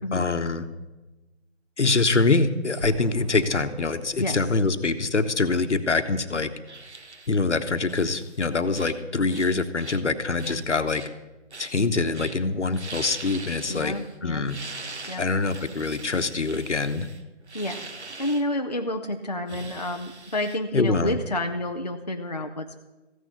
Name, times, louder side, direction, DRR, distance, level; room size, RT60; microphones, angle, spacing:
voice 1, 0.1-0.6 1.8-6.5 7.3-11.0 11.6-13.9 14.2-14.6 15.2-17.1 20.7-21.2, left 3 dB, 70° left, 10 dB, 1.2 m, -24 dB
sound 1, 2.8-5.8, equal, 20° right, 0.8 m, -42 dB
sound 2, 6.7-7.3 7.9-8.4 8.7-9.0 9.3-10.0 10.4-11.1 11.5-11.8 12.1-12.4 12.7-14.2 14.5-18.4 19.5-20.6, right 3 dB, 65° right, 1.4 m, -41 dB
voice 2, 13.7-14.5 15.1-15.2 17.5-17.9 18.2-22.8, left 1 dB, 35° left, 4 dB, 0.5 m, -29 dB
15.0 x 6.6 x 8.3 m, 1.1 s
figure-of-eight pair, 165°, 36 cm